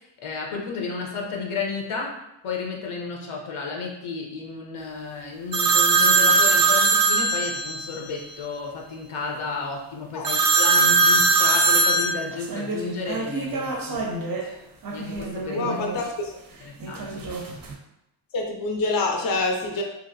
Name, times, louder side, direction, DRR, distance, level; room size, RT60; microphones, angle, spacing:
voice 1, 0.2-2.1 2.4-14.0 14.9-15.8 16.6-17.2, left 4 dB, 90° left, 0 dB, 0.7 m, -32 dB
sound 1, 5.5-8.0 10.2-14.5 14.8-16.0 16.8-17.7, right 3 dB, 50° right, 0.4 m, -21 dB
voice 2, 15.5-16.3 18.3-19.8, left 3 dB, 50° left, 1 dB, 0.5 m, -26 dB
2.8 x 2.4 x 2.6 m, 0.85 s
wide cardioid pair, 115°, 47 cm